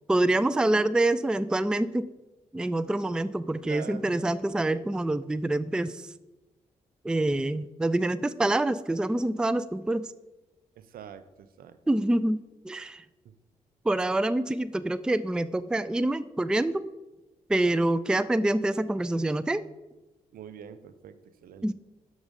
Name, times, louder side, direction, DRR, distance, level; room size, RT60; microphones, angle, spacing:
voice 1, 0.1-2.1 2.5-6.0 7.0-10.1 11.9-13.0 13.9-16.8 17.5-19.6 21.6-21.7, right 1 dB, 5° right, 16 dB, 0.3 m, -26 dB
voice 2, 3.6-4.3 10.8-11.2 11.6-11.8 20.3-21.7, right 8 dB, 70° right, 12 dB, 0.6 m, -44 dB
6.3 x 6.2 x 5.3 m, 1.1 s
hypercardioid pair, 45°, 16 cm